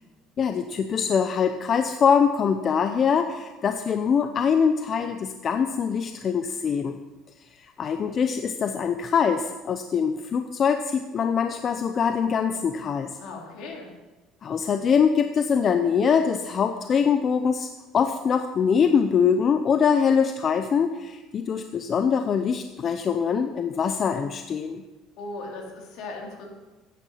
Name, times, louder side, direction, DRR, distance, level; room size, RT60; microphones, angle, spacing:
voice 1, 0.4-7.0 7.8-13.2 14.4-17.7 17.9-24.8, left 6 dB, 35° left, 8 dB, 0.6 m, -23 dB
voice 2, 13.2-13.9 25.2-26.5, left 2 dB, 65° left, 0 dB, 3.4 m, -37 dB
14.5 x 9.4 x 5.7 m, 1.2 s
cardioid pair, 150°, 0 cm